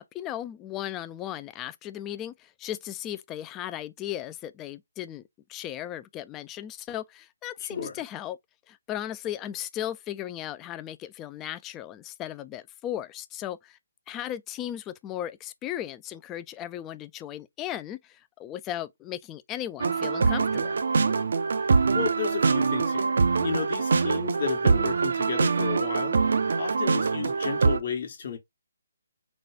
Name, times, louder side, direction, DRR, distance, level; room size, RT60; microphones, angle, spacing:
voice 1, 0.0-5.2 5.5-8.4 8.7-13.8 14.1-20.8, left 12 dB, 15° left, 0.3 m, -36 dB
voice 2, 7.6-7.9 21.9-28.4, left 7 dB, 50° left, 1.1 m, -33 dB
sound 1, 19.8-27.8, right 4 dB, 65° right, 0.5 m, -24 dB
4.0 x 2.3 x 3.3 m
hypercardioid pair, 150°, 0 cm